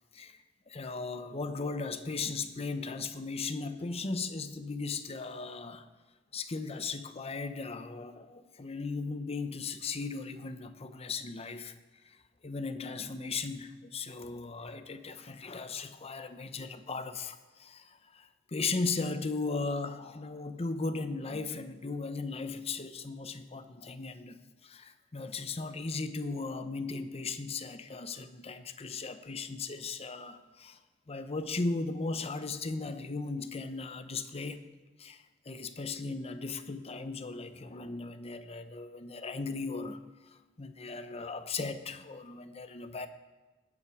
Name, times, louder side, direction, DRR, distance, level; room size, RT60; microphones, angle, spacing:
voice 1, 0.7-5.9 6.3-11.7 12.0-12.2 12.4-30.8 31.1-34.6 35.0-40.0 40.3-43.1, left 3 dB, 30° left, 10 dB, 0.7 m, -37 dB
19.0 x 8.5 x 4.9 m, 1.2 s
head